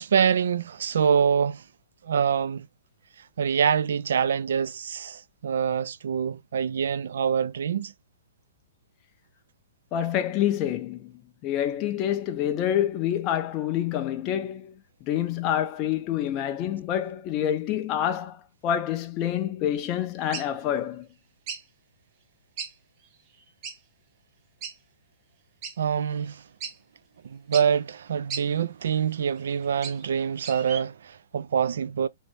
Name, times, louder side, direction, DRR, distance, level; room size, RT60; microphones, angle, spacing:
voice 1, 0.0-1.6 2.0-2.7 3.4-7.9 25.8-26.4 27.2-32.1, right 7 dB, 70° right, 0.3 m, -25 dB
voice 2, 9.9-11.1 11.4-14.7 15.0-18.4 18.6-21.1, left 10 dB, 25° left, 0.4 m, -27 dB
sound 1, 20.3-20.5 21.5-21.6 22.6-22.7 23.0-23.1 23.6-23.8 24.6-24.7 25.6-25.7 26.2-26.3 26.6-26.7 27.5-27.7 28.3-28.4 29.4-30.1 30.4-30.8, right 6 dB, 25° right, 0.6 m, -35 dB
3.0 x 2.6 x 3.3 m
hypercardioid pair, 170°, 0 cm